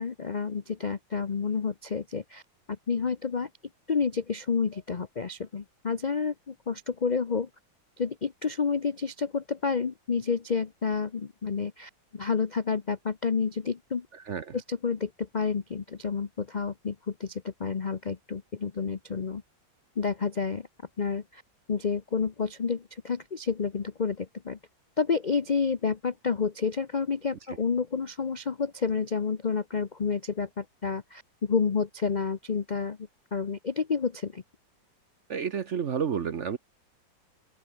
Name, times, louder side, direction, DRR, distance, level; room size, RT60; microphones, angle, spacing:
voice 1, 0.0-2.4 2.9-3.5 3.9-7.5 8.0-14.1 14.5-19.4 20.0-20.7 21.0-21.4 21.7-24.6 25.0-33.0 33.3-34.4, left 5 dB, 65° left, 0.4 m, -29 dB
voice 2, 14.1-14.6 35.3-36.6, right 7 dB, 50° right, 0.9 m, -30 dB
open air
omnidirectional pair, 2.1 m